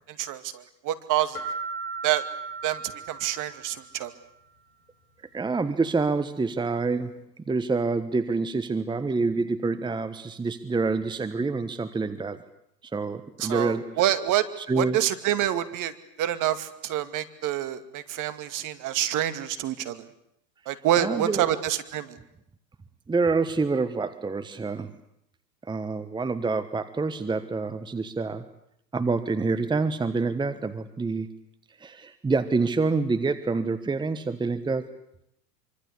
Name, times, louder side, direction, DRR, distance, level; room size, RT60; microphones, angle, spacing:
voice 1, 0.1-1.4 2.0-2.2 2.6-4.1 13.4-14.5 14.8-15.9 16.2-20.1 20.7-22.2, right 12 dB, 40° right, 11 dB, 2.4 m, -27 dB
sound 1, 1.3-4.0, right 4 dB, 70° left, 7.4 m, -36 dB
voice 2, 5.3-7.1 7.5-12.4 12.9-13.9 14.6-15.0 20.7-21.4 23.1-24.9 25.7-28.4 28.9-31.3 31.8-34.9, right 4 dB, 10° right, 11 dB, 1.3 m, -27 dB
26.0 x 25.0 x 8.4 m, 0.77 s
hypercardioid pair, 100°, 48 cm